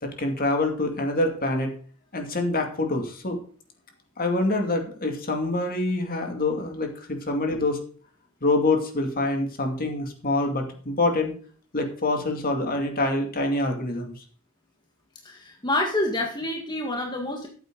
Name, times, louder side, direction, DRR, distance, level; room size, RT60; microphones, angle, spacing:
voice 1, 0.0-1.7 2.1-3.4 4.2-7.8 8.4-11.3 11.7-14.2, left 2 dB, 45° left, 3 dB, 2.5 m, -26 dB
voice 2, 15.2-17.5, left 1 dB, 20° left, 0 dB, 1.8 m, -27 dB
14.0 x 8.4 x 3.9 m, 0.44 s
head